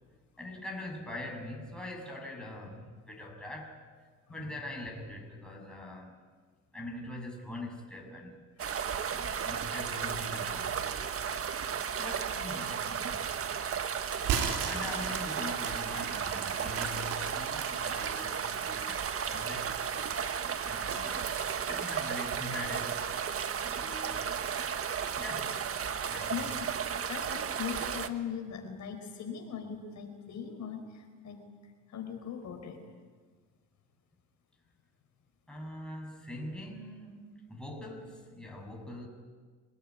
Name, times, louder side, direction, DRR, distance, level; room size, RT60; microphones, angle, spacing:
voice 1, 0.4-3.8 4.3-6.2 6.7-8.5 9.1-11.3 11.9-19.8 20.6-23.1 23.7-24.3 25.2-25.6 26.1-26.6 35.5-39.1, left 1 dB, 5° left, 0 dB, 7.2 m, -43 dB
sound 1, 8.6-28.1, right 7 dB, 45° right, 1.5 m, -34 dB
sound 2, 14.2-18.1 18.6-19.9, right 7 dB, 85° right, 3.3 m, -35 dB
voice 2, 27.1-31.4 31.9-32.8, left 8 dB, 60° left, 4 dB, 4.6 m, -39 dB
26.0 x 19.5 x 9.7 m, 1.5 s
cardioid pair, 90°, 32 cm